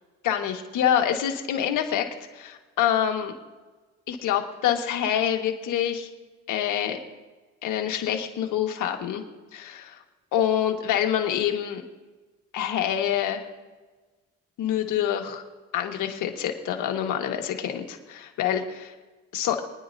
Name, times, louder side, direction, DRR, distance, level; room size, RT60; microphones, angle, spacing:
voice 1, 0.2-2.1 2.3-3.3 4.1-6.1 6.5-7.0 7.6-9.2 9.5-10.0 10.3-11.8 12.5-13.4 14.6-15.4 15.7-18.9 19.3-19.6, left 10 dB, 85° left, 3 dB, 1.6 m, -26 dB
24.5 x 10.0 x 2.7 m, 1.3 s
cardioid pair, 90°, 30 cm